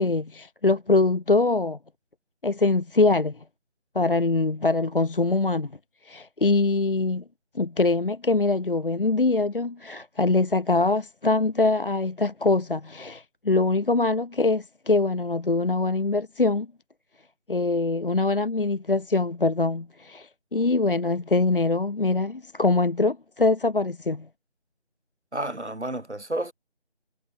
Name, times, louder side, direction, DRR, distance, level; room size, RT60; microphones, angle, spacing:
voice 1, 0.0-1.8 2.4-3.4 3.9-5.7 6.0-7.2 7.5-16.7 17.5-24.3, left 3 dB, 55° left, 0.6 m, -23 dB
voice 2, 25.3-26.5, right 1 dB, 85° right, 4.6 m, -31 dB
figure-of-eight pair, 175°, 33 cm